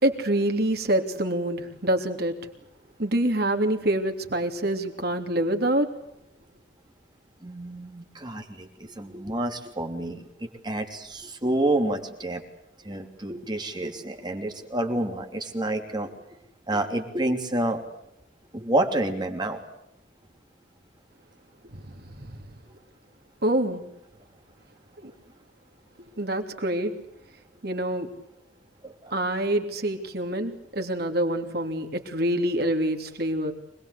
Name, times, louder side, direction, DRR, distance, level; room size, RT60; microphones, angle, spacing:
voice 1, 0.0-2.3 3.0-5.9 21.7-22.4 23.4-23.8 25.0-25.1 26.2-26.9 27.6-28.1 29.1-33.5, right 1 dB, 55° right, 5 dB, 3.0 m, -26 dB
voice 2, 7.4-12.4 12.8-16.1 16.7-17.8 18.5-19.6 28.8-29.1, right 1 dB, 25° right, 4 dB, 3.2 m, -29 dB
25.5 x 20.5 x 8.2 m, 0.81 s
head